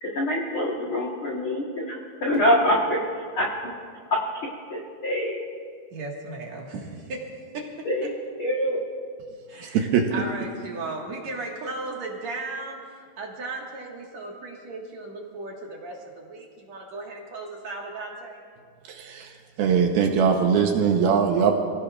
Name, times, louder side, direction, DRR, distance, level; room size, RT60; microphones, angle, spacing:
voice 1, 0.0-3.0 3.3-3.5 4.1-4.2 4.7-5.4 7.8-8.1 8.4-8.8, left 1 dB, 75° left, -3 dB, 1.2 m, -24 dB
voice 2, 5.9-7.2 7.5-7.6 8.0-8.1 9.5-18.4, right 3 dB, 50° right, -1 dB, 2.4 m, -36 dB
voice 3, 9.7-10.1 19.0-19.3 19.6-21.5, right 6 dB, 75° right, 3 dB, 2.5 m, -21 dB
27.5 x 17.0 x 2.5 m, 2.1 s
omnidirectional pair, 4.8 m